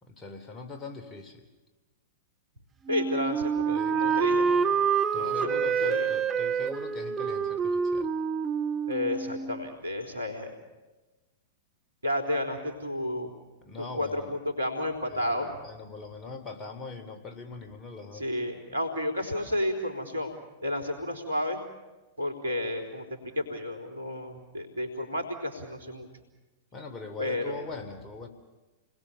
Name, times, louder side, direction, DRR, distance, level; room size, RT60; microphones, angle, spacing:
voice 1, 0.0-1.5 3.7-4.4 5.1-8.1 13.6-14.4 15.1-18.2 26.7-28.3, left 4 dB, 25° left, 6 dB, 3.7 m, -42 dB
Wind instrument woodwind instrument, 2.9-9.7, right 6 dB, 20° right, 1.5 m, -27 dB
voice 2, 2.9-4.7 5.1-6.1 8.9-10.6 12.0-13.3 13.9-15.5 18.1-20.3 20.6-21.6 22.2-26.1 27.2-27.6, left 1 dB, 85° right, 4 dB, 4.1 m, -32 dB
30.0 x 21.0 x 7.0 m, 1.2 s
figure-of-eight pair, 100°, 0 cm